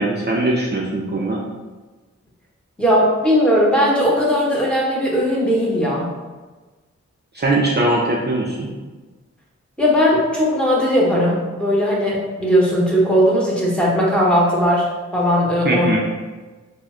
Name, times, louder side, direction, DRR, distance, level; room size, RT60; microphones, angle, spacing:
voice 1, 0.0-1.4 7.3-8.7 15.6-16.0, right 2 dB, 35° right, -4 dB, 0.5 m, -20 dB
voice 2, 2.8-6.1 9.8-15.9, equal, 5° left, -5 dB, 0.9 m, -18 dB
3.1 x 2.1 x 3.7 m, 1.3 s
cardioid pair, 50°, 29 cm